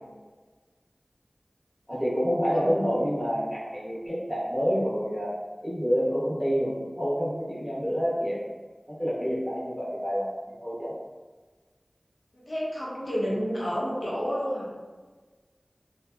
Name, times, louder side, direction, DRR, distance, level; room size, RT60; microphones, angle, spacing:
voice 1, 1.9-5.4 5.6-8.4 8.9-10.9, equal, 15° left, -7 dB, 1.0 m, -28 dB
voice 2, 12.3-14.7, equal, 70° left, -7 dB, 0.9 m, -30 dB
2.8 x 2.2 x 2.2 m, 1.3 s
wide cardioid pair, 50°, 0 cm